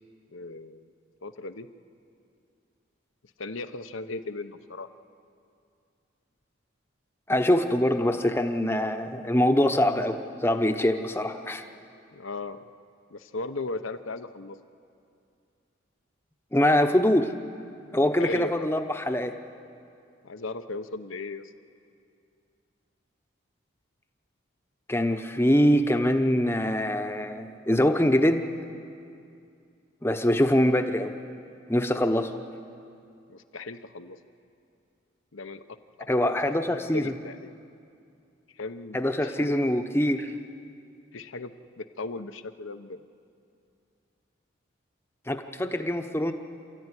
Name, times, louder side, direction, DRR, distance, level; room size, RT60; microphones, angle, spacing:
voice 1, 0.3-0.8 1.2-1.7 3.4-4.9 12.1-12.7 13.1-14.6 18.2-18.7 20.2-21.5 33.3-34.2 35.3-35.6 36.0-36.5 36.9-37.5 38.6-39.6 41.1-43.0, left 3 dB, 80° left, 9 dB, 1.0 m, -37 dB
voice 2, 7.3-11.6 16.5-17.3 17.9-19.3 24.9-28.5 30.0-31.1 31.7-32.3 36.1-37.1 38.9-40.3 45.3-46.3, left 1 dB, 10° left, 6 dB, 0.9 m, -24 dB
28.0 x 14.0 x 9.9 m, 2.5 s
head